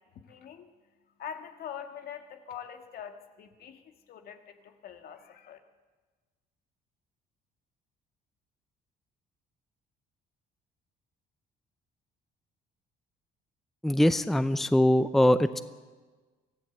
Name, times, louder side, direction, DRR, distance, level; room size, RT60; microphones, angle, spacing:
voice 1, 0.1-0.7 1.2-5.6, left 8 dB, 65° left, 6 dB, 1.9 m, -44 dB
voice 2, 13.8-15.6, left 1 dB, ahead, 13 dB, 0.6 m, -22 dB
24.0 x 15.0 x 8.1 m, 1.4 s
cardioid pair, 110°, 17 cm